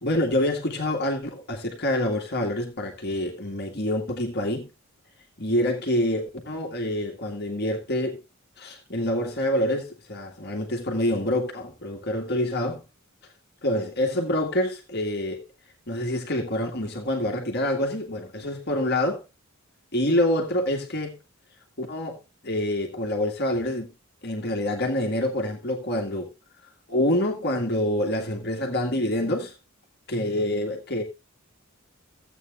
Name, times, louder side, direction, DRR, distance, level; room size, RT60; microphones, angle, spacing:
voice 1, 0.0-4.7 5.4-8.2 8.6-12.8 13.6-15.5 15.9-19.2 19.9-21.2 21.8-23.9 24.2-26.3 26.9-29.5 30.1-31.0, left 1 dB, 50° left, 1.8 m, -26 dB
16.0 x 8.5 x 2.5 m
head